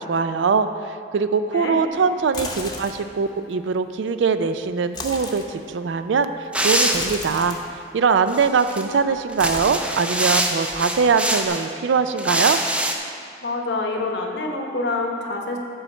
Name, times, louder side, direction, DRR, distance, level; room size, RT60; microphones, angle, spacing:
voice 1, 0.0-7.6 7.9-12.6, right 5 dB, 85° right, 10 dB, 0.4 m, -22 dB
voice 2, 1.5-1.8 13.4-15.6, left 2 dB, 75° left, 2 dB, 0.9 m, -26 dB
sound 1, 2.2-3.1 4.8-5.5 6.9-7.6 8.4-8.8 9.1-10.3 10.7-11.5, left 3 dB, 25° left, 0.7 m, -35 dB
sound 2, 6.5-7.5 8.3-8.8 9.3-11.7 12.2-13.0, right 1 dB, 5° right, 0.4 m, -24 dB
7.7 x 4.4 x 6.4 m, 2.4 s
head